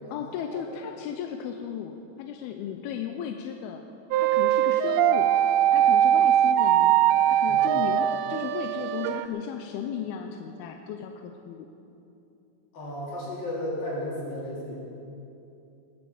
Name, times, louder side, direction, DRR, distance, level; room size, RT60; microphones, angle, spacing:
voice 1, 0.1-3.8 4.2-5.3 5.7-7.0 7.3-11.7, left 8 dB, 90° left, 4 dB, 2.6 m, -35 dB
sound 1, 4.1-9.3, right 11 dB, 85° right, 2.5 m, -21 dB
voice 2, 12.7-14.7, left 1 dB, 65° left, -6 dB, 5.4 m, -33 dB
19.5 x 9.6 x 7.1 m, 2.9 s
omnidirectional pair, 4.4 m